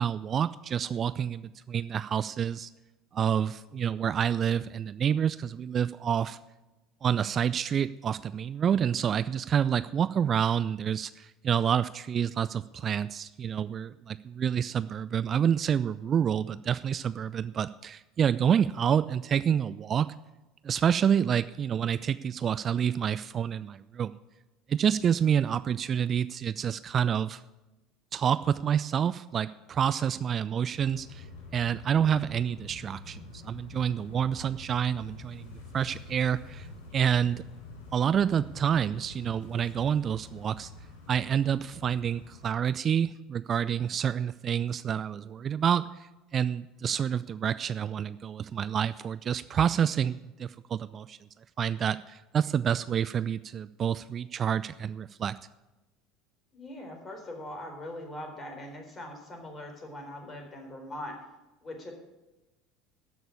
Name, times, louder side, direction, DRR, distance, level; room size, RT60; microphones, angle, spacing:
voice 1, 0.0-2.7 3.1-6.4 7.0-20.1 20.6-24.1 24.7-27.4 28.1-31.2 31.5-36.7 36.9-37.4 37.9-40.7 41.1-51.2 51.6-55.3, right 8 dB, 40° right, 15 dB, 0.4 m, -28 dB
sound 1, 30.7-42.5, left 3 dB, 75° left, 4.9 m, -47 dB
voice 2, 56.5-61.1 61.6-61.9, left 1 dB, 30° left, 3 dB, 4.1 m, -41 dB
13.5 x 6.2 x 8.6 m, 1.0 s
hypercardioid pair, 70°, 0 cm